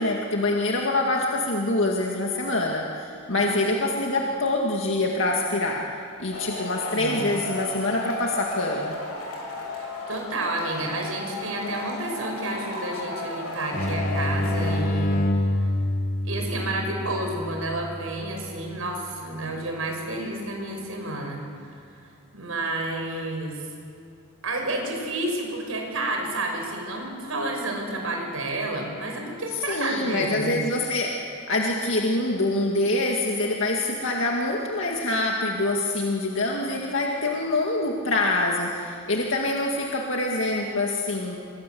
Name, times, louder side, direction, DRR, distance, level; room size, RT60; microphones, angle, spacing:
voice 1, 0.0-5.8 6.2-9.0 29.7-41.4, left 2 dB, 60° left, 0 dB, 2.1 m, -25 dB
voice 2, 3.3-3.8 7.0-7.3 9.7-15.5 16.2-21.4 22.3-23.7 24.4-30.6, right 2 dB, 70° right, 2 dB, 5.7 m, -30 dB
Male speech man speaking / Shout / Clapping, 6.3-14.7, left 2 dB, 80° left, 7.2 m, -34 dB
sound 1, 13.7-19.2, left 1 dB, 35° left, 1.6 m, -27 dB
26.5 x 24.0 x 7.8 m, 2.3 s
head